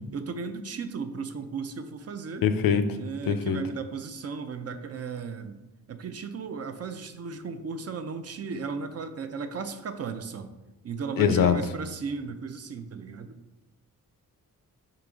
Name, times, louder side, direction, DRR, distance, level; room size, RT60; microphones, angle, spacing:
voice 1, 0.1-2.5 2.9-5.6 5.9-10.5 10.8-13.4, right 5 dB, 45° right, 9 dB, 0.4 m, -35 dB
voice 2, 2.4-3.0 3.3-3.6 11.2-11.6, left 7 dB, 75° left, 10 dB, 0.5 m, -22 dB
3.8 x 2.9 x 4.7 m, 1.0 s
cardioid pair, 75°, 35 cm